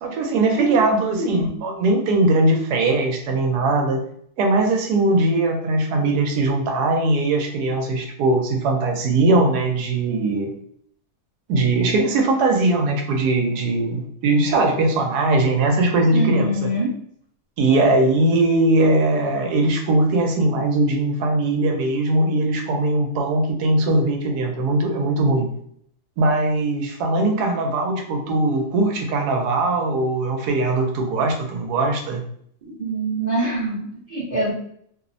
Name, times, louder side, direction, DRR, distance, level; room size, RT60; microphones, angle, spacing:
voice 1, 0.0-4.0 4.4-10.5 11.5-16.7 17.6-25.5 26.2-32.2, right 2 dB, 80° right, 3 dB, 1.1 m, -20 dB
voice 2, 16.1-16.9 32.8-34.5, right 1 dB, 40° right, -8 dB, 0.7 m, -24 dB
2.9 x 2.0 x 2.5 m, 0.66 s
omnidirectional pair, 1.7 m